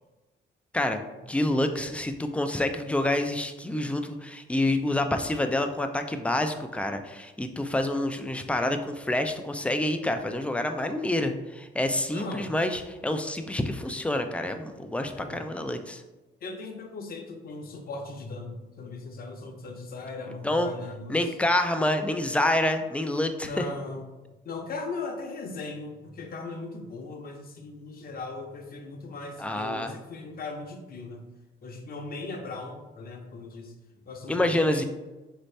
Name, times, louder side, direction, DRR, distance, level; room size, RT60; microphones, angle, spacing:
voice 1, 0.7-16.0 20.4-20.7 21.1-23.6 29.4-29.9 34.3-34.8, left 1 dB, 5° left, 7 dB, 0.4 m, -27 dB
voice 2, 12.1-12.5 15.2-15.4 16.4-21.2 23.4-24.0 24.4-31.2 31.6-33.7 34.1-34.8, left 3 dB, 50° left, 3 dB, 0.7 m, -38 dB
4.2 x 2.7 x 3.2 m, 1.1 s
cardioid pair, 90°, 20 cm